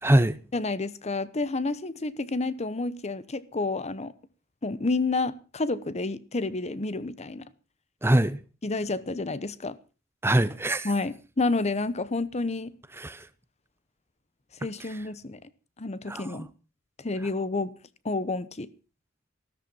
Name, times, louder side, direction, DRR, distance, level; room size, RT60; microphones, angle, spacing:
voice 1, 0.0-0.4 8.0-8.4 10.2-10.9 13.0-13.3 14.8-15.0 16.1-16.5, right 1 dB, 10° right, 0.7 m, -23 dB
voice 2, 0.5-4.1 4.6-7.4 8.6-9.8 10.8-12.7 14.6-15.4 15.8-16.5 17.0-17.7 18.0-18.7, left 3 dB, 30° left, 0.9 m, -29 dB
14.5 x 13.5 x 5.5 m
head